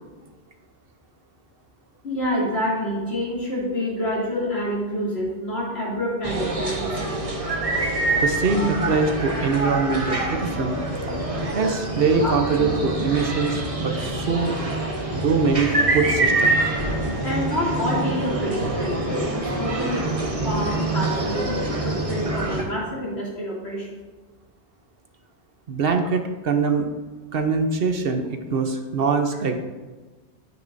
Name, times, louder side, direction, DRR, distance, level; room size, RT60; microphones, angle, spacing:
voice 1, 2.0-7.1 12.2-12.3 17.2-20.1 20.4-23.9, equal, 70° left, -5 dB, 3.0 m, -27 dB
sound 1, 6.2-22.6, right 2 dB, 30° right, 1.3 m, -25 dB
voice 2, 8.2-10.8 11.5-14.5 15.1-16.6 25.7-26.9 27.3-29.6, right 4 dB, 60° right, 5 dB, 1.0 m, -23 dB
10.5 x 9.4 x 2.7 m, 1.3 s
omnidirectional pair, 1.1 m